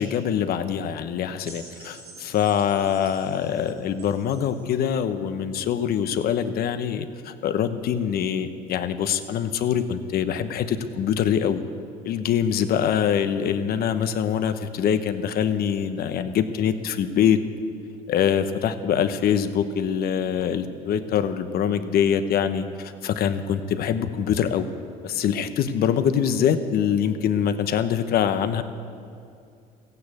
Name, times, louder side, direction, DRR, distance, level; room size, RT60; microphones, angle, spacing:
voice 1, 0.0-11.6 12.0-17.4 18.1-24.7 25.0-28.6, left 8 dB, 60° left, 9 dB, 1.0 m, -24 dB
sound 1, 1.4-4.7 5.6-5.7, right 2 dB, 60° right, 4.5 m, -47 dB
15.0 x 9.5 x 8.4 m, 2.5 s
supercardioid pair, 95°, 17 cm